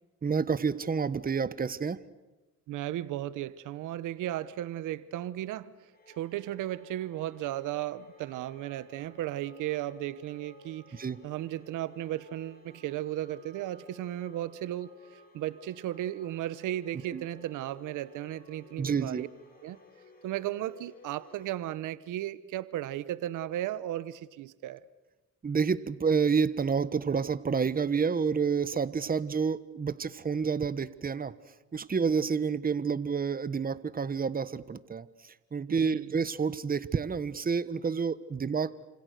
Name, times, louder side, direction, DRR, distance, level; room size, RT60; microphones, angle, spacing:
voice 1, 0.2-2.0 10.9-11.2 17.1-17.2 18.8-19.2 25.4-31.3 31.7-38.8, right 5 dB, 30° right, 15 dB, 1.2 m, -29 dB
voice 2, 2.7-5.8 6.2-19.3 19.6-19.8 20.2-24.8 35.8-36.1, right 13 dB, 85° right, 16 dB, 1.1 m, -35 dB
sound 1, 5.9-21.5, left 2 dB, 30° left, 6.5 m, -57 dB
29.5 x 26.5 x 6.7 m, 1.1 s
cardioid pair, 90°, 30 cm